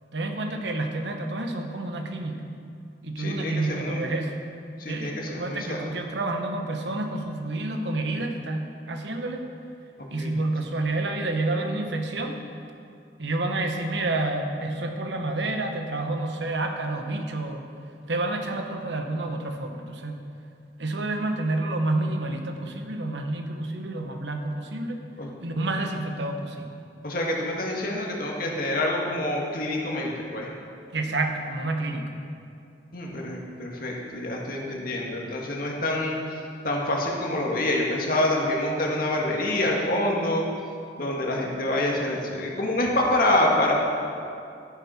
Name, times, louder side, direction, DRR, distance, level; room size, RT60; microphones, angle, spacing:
voice 1, 0.1-2.6 3.0-4.3 4.9-9.4 10.1-12.4 13.2-17.6 18.0-20.2 20.8-25.0 25.4-26.8 30.9-32.1, right 2 dB, 80° right, 4 dB, 1.2 m, -29 dB
voice 2, 3.2-4.1 4.8-5.9 10.2-10.3 25.2-25.3 27.0-30.5 32.9-36.2 36.6-40.4 41.0-43.7, left 1 dB, 50° left, -1 dB, 1.9 m, -26 dB
13.0 x 10.5 x 4.4 m, 2.5 s
head